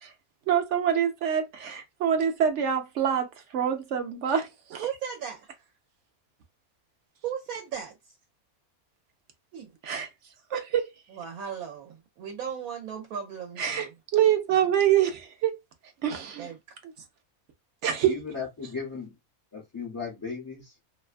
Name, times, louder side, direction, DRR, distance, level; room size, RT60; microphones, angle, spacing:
voice 1, 0.5-3.3 3.5-4.8 9.8-10.1 10.5-10.9 13.6-13.9 14.1-15.6 16.0-16.5 17.8-18.1, right 9 dB, 65° right, 0.8 m, -25 dB
voice 2, 4.8-5.5 7.2-8.1 9.5-9.7 11.1-13.9 16.1-16.6, right 8 dB, 80° right, 1.1 m, -36 dB
voice 3, 18.1-19.1 19.5-20.7, left 5 dB, 20° left, 0.6 m, -36 dB
2.7 x 2.2 x 2.4 m
omnidirectional pair, 1.5 m